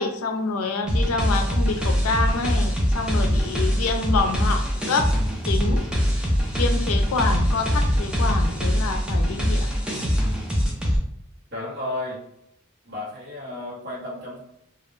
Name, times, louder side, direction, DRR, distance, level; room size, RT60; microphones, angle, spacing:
voice 1, 0.0-5.1 5.4-5.9 6.5-9.7, left 3 dB, 85° left, 6 dB, 0.4 m, -27 dB
sound 1, 0.9-11.0, equal, 5° right, 0.4 m, -23 dB
voice 2, 10.6-10.9 11.5-12.2 12.8-14.4, left 1 dB, 50° right, -6 dB, 0.9 m, -33 dB
2.3 x 2.0 x 3.0 m, 0.77 s
head